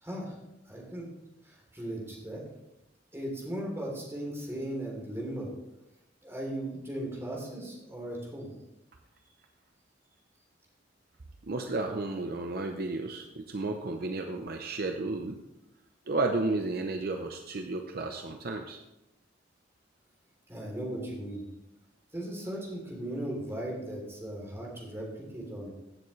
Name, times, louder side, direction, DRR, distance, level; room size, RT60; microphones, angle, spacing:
voice 1, 0.0-0.4 0.7-1.1 1.4-2.4 3.1-5.5 6.2-8.5 20.5-21.4 22.1-25.1 25.3-25.7, right 1 dB, 15° right, -3 dB, 3.2 m, -37 dB
voice 2, 11.5-15.4 16.1-18.8, right 2 dB, 55° right, 5 dB, 0.7 m, -32 dB
16.0 x 7.1 x 3.2 m, 0.91 s
head